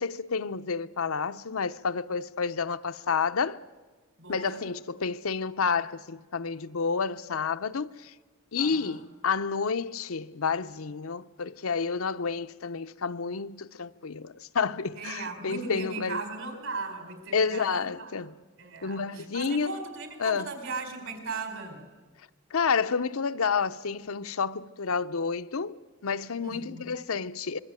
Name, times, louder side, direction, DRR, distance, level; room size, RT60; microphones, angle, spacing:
voice 1, 0.0-3.6 4.3-8.1 8.5-16.2 17.3-18.4 18.8-19.7 20.2-20.5 22.5-25.8 26.0-27.6, left 5 dB, 85° left, 0.7 m, -30 dB
voice 2, 4.2-4.6 8.6-9.0 15.0-18.1 18.6-21.8 26.4-26.8, right 3 dB, 70° right, 4.7 m, -38 dB
25.5 x 22.5 x 9.0 m
head